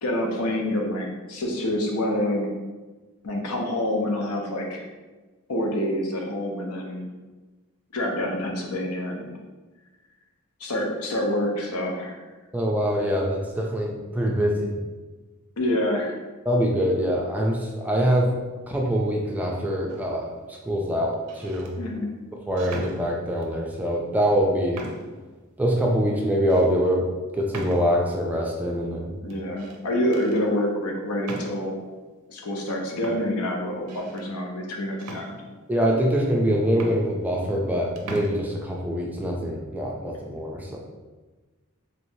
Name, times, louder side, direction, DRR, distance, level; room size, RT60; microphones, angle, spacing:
voice 1, 0.0-2.5 3.2-4.8 5.5-7.0 7.9-9.3 10.6-12.2 15.6-16.2 21.8-22.1 29.2-31.8 32.3-35.3, left 1 dB, 80° left, 1 dB, 0.7 m, -27 dB
voice 2, 12.5-14.7 16.5-18.3 18.7-20.3 20.7-21.7 22.5-24.8 25.6-27.1 27.3-29.1 35.7-40.8, equal, 5° right, -1 dB, 0.3 m, -24 dB
sound 1, 19.9-20.3 21.1-21.7 22.6-23.5 24.2-24.3 24.7-25.3 25.8-25.9 26.5-26.7 27.5-28.2 29.3-29.8 30.1-30.4 31.2-31.9 32.6-32.7 33.0-34.3 35.0-35.8 36.4-36.5 36.7-37.7 38.0-38.3, right 2 dB, 80° right, 0.5 m, -40 dB
3.3 x 3.0 x 2.7 m, 1.2 s
head